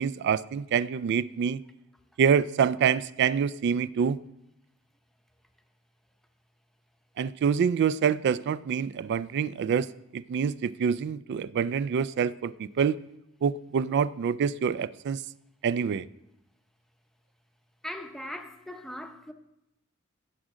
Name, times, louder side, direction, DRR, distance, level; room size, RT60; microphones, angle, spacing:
voice 1, 0.0-1.6 2.2-4.2 7.2-13.0 13.4-15.2 15.6-16.1, right 7 dB, 55° right, 0.3 m, -26 dB
voice 2, 17.8-19.3, left 1 dB, ahead, 0.7 m, -39 dB
16.0 x 6.2 x 3.7 m
head